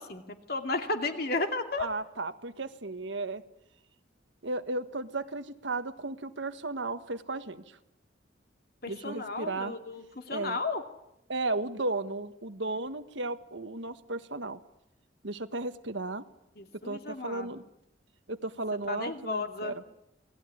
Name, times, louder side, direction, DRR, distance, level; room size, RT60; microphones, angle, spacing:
voice 1, 0.0-1.9 8.8-10.8 16.6-17.6 18.9-19.7, left 3 dB, 50° left, 5 dB, 2.5 m, -34 dB
voice 2, 1.8-3.4 4.4-7.8 8.9-9.7 10.3-10.6 11.3-14.6 15.2-16.2 16.8-17.6 18.3-19.8, right 2 dB, 75° right, 9 dB, 1.5 m, -34 dB
27.5 x 18.5 x 9.8 m, 0.85 s
head